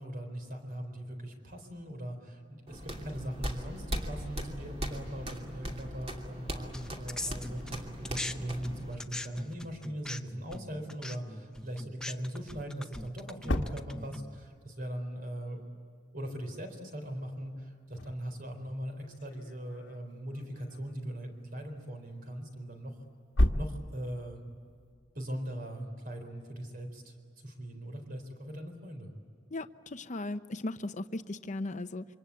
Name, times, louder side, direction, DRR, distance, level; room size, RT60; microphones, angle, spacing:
voice 1, 0.0-15.7 16.1-22.9 23.5-24.4 25.1-27.2 27.4-29.1, equal, 50° right, 5 dB, 4.1 m, -40 dB
sound 1, 2.7-8.9, equal, 30° right, 2.8 m, -39 dB
sound 2, 6.7-8.3 8.6-14.4, left 1 dB, 5° left, 0.7 m, -41 dB
sound 3, 12.4-12.5 13.0-14.7 17.6-21.2 22.3-24.5, left 1 dB, 75° left, 1.4 m, -34 dB
voice 2, 29.5-32.0, left 2 dB, 40° left, 11 dB, 0.8 m, -37 dB
27.5 x 25.0 x 8.5 m, 2.2 s
head